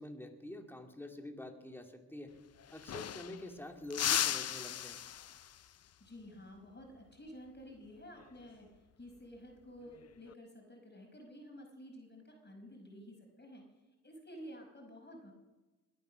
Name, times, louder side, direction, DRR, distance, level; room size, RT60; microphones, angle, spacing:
voice 1, 0.0-2.3 2.7-5.0, left 1 dB, 5° left, 3 dB, 2.5 m, -47 dB
sound 1, 2.3-2.4 2.6-3.5 3.9-5.7 8.2-8.5 9.9-10.3, left 10 dB, 45° left, 0.5 m, -36 dB
voice 2, 6.0-13.7 14.0-15.3, equal, 30° left, 2 dB, 5.2 m, -52 dB
21.5 x 9.3 x 6.4 m, 1.1 s
cardioid pair, 55°, 35 cm